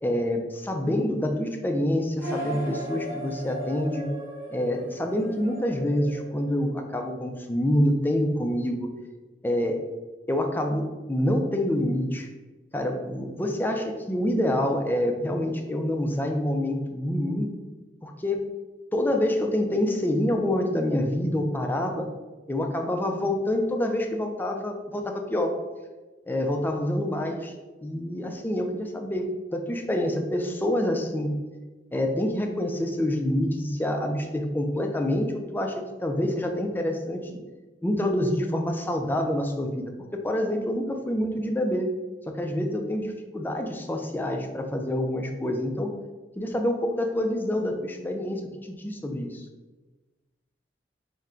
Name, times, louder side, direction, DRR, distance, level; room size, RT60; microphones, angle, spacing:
voice 1, 0.0-4.1 4.5-8.9 9.4-9.8 10.3-12.3 12.7-17.5 18.0-18.4 18.9-22.1 22.5-25.6 26.3-27.5 27.8-31.4 31.9-37.4 37.8-41.9 42.3-45.9 46.4-49.4, left 1 dB, 10° left, 4 dB, 0.4 m, -27 dB
sound 1, 2.2-7.0, right 1 dB, 15° right, 1.1 m, -37 dB
3.7 x 2.2 x 4.3 m, 1.2 s
head